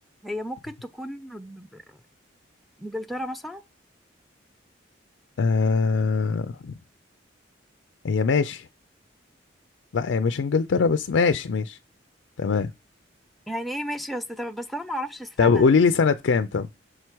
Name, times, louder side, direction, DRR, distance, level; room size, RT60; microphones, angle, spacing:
voice 1, 0.2-2.0 2.8-3.6 13.5-15.7, equal, ahead, 0.4 m, -33 dB
voice 2, 5.4-6.7 8.0-8.7 9.9-11.8 12.4-12.7 15.4-16.7, left 5 dB, 75° left, 0.4 m, -22 dB
6.4 x 4.6 x 4.5 m
head